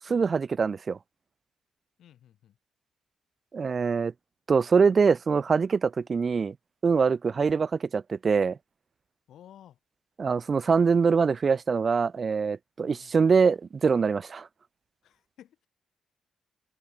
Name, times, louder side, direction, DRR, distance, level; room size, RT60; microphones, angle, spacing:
voice 1, 0.1-1.0 3.5-4.1 4.5-6.5 6.8-8.6 10.2-14.5, right 5 dB, 35° right, 0.5 m, -24 dB
voice 2, 2.0-2.6 7.3-7.6 9.3-9.8 12.8-13.2 15.0-15.7, left 11 dB, 80° left, 8.0 m, -54 dB
cardioid pair, 140°, 0 cm